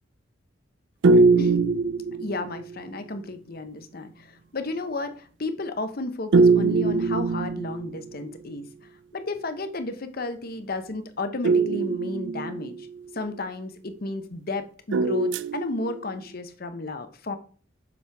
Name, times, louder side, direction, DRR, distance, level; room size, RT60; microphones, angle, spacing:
sound 1, 1.0-2.8 6.3-8.2 11.4-13.0 14.9-16.1, right 3 dB, 60° right, 0.4 m, -22 dB
voice 1, 1.1-1.6 2.2-8.7 9.1-12.9 13.1-17.4, left 2 dB, 45° left, 9 dB, 0.8 m, -33 dB
7.2 x 6.3 x 3.5 m, 0.40 s
head